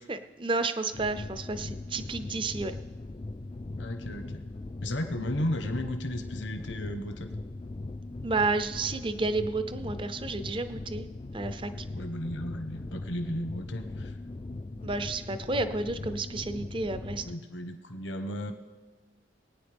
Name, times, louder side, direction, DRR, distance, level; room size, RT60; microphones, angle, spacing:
voice 1, 0.0-2.8 8.2-11.1 11.3-11.9 14.8-17.2, right 3 dB, 25° right, 11 dB, 0.5 m, -31 dB
sound 1, 0.9-17.3, left 2 dB, 25° left, 0.3 m, -40 dB
voice 2, 3.8-4.4 4.8-7.4 11.9-14.1 17.2-18.5, left 1 dB, 70° left, 6 dB, 1.1 m, -34 dB
22.0 x 9.4 x 3.5 m, 1.3 s
head